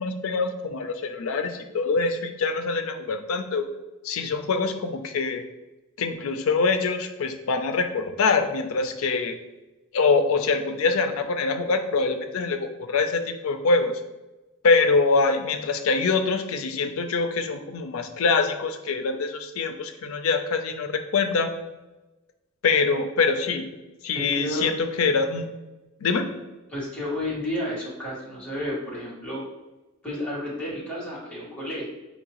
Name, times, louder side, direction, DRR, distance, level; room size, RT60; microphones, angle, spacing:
voice 1, 0.0-3.7 4.0-5.5 6.0-9.4 9.9-14.0 14.6-21.5 22.6-23.7 24.0-24.7 25.0-25.5 26.0-26.3, left 4 dB, 85° left, 7 dB, 0.4 m, -24 dB
voice 2, 24.1-24.7 26.7-29.4 30.0-31.9, left 1 dB, 5° left, -8 dB, 1.4 m, -31 dB
4.3 x 2.7 x 2.9 m, 1.1 s
head